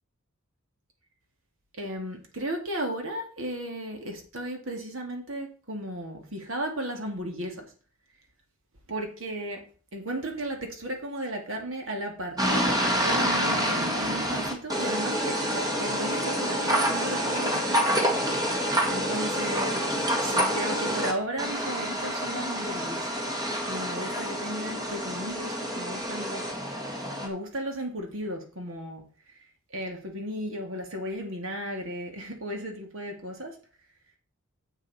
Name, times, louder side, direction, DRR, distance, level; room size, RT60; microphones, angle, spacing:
voice 1, 1.8-7.7 8.9-9.6 9.9-17.9 18.3-19.8 20.2-23.1 23.7-26.4 27.2-29.0 29.7-33.6, right 1 dB, 65° right, 3 dB, 2.4 m, -35 dB
sound 1, 12.4-21.1 21.4-27.3, equal, 15° right, 1.7 m, -27 dB
10.0 x 7.3 x 4.2 m, 0.38 s
head